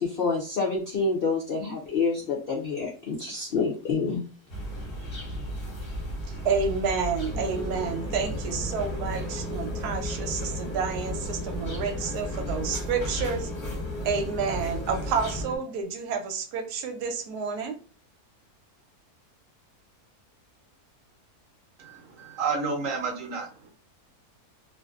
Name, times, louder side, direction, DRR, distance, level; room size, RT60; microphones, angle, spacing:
voice 1, 0.0-4.3, left 4 dB, 75° left, -2 dB, 0.5 m, -27 dB
sound 1, 4.5-15.4, equal, 45° left, 0.9 m, -35 dB
voice 2, 6.4-13.5 14.0-17.8, right 5 dB, 85° right, 5 dB, 1.1 m, -29 dB
sound 2, 7.3-15.6, equal, 10° left, 0.6 m, -38 dB
voice 3, 21.8-23.7, right 4 dB, 65° right, 2 dB, 0.9 m, -31 dB
2.5 x 2.5 x 2.3 m, 0.38 s
omnidirectional pair, 1.6 m